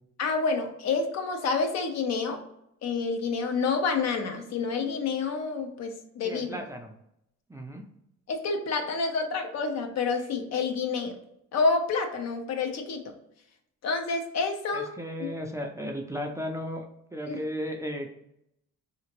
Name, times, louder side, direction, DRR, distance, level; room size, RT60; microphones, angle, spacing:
voice 1, 0.2-2.4 2.8-6.6 8.3-11.2 11.5-13.1 13.8-14.9 15.2-15.3 17.3-17.4, left 4 dB, 60° left, 5 dB, 0.6 m, -28 dB
voice 2, 6.2-6.9 7.5-7.9 14.7-18.1, equal, 10° right, 2 dB, 0.4 m, -35 dB
2.8 x 2.4 x 2.9 m, 0.77 s
cardioid pair, 90°, 30 cm